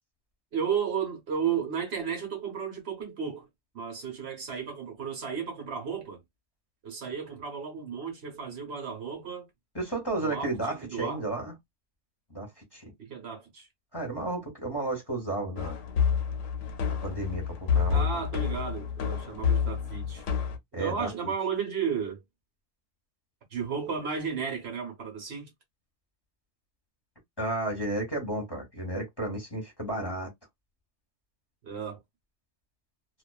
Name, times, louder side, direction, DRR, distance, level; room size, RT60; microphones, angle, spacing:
voice 1, 0.5-3.5 3.7-6.2 6.8-9.5 10.2-11.2 13.0-13.7 17.9-20.2 20.7-22.2 23.5-25.5 31.6-32.0, right 6 dB, 60° right, 1.1 m, -33 dB
voice 2, 9.7-11.5 12.3-12.8 13.9-15.7 17.0-18.0 20.7-21.3 27.4-30.3, right 2 dB, 20° left, 1.0 m, -32 dB
sound 1, 15.6-20.6, left 7 dB, 85° left, 0.9 m, -28 dB
2.4 x 2.3 x 2.3 m
omnidirectional pair, 1.2 m